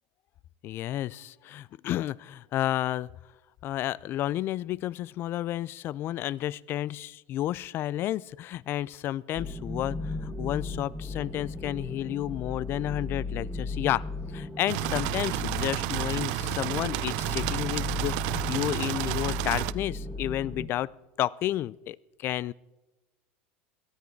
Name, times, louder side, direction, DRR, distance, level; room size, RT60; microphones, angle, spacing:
voice 1, 0.6-3.1 3.6-14.0 14.3-20.9 21.2-22.5, left 13 dB, 40° left, 24 dB, 0.4 m, -31 dB
sound 1, 9.4-20.7, left 3 dB, 5° right, 1.4 m, -36 dB
sound 2, 14.7-19.7, right 20 dB, 65° right, 0.5 m, -31 dB
18.0 x 13.0 x 4.6 m, 1.1 s
supercardioid pair, 120°, 6 cm